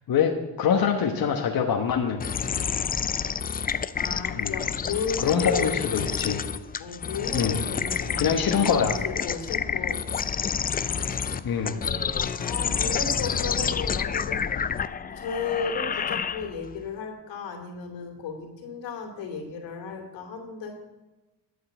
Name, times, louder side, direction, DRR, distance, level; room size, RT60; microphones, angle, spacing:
voice 1, 0.1-2.3 4.3-4.5 5.2-6.4 7.3-7.6 8.2-8.9 11.4-11.8, left 7 dB, 50° left, 2 dB, 1.3 m, -24 dB
sound 1, 2.2-16.7, left 7 dB, 20° left, 0.3 m, -29 dB
voice 2, 3.9-5.7 6.8-10.0 10.3-10.4 10.7-14.8 15.1-20.7, left 5 dB, 80° left, 2 dB, 2.7 m, -35 dB
12.0 x 5.6 x 8.0 m, 1.1 s
cardioid pair, 90°, 45 cm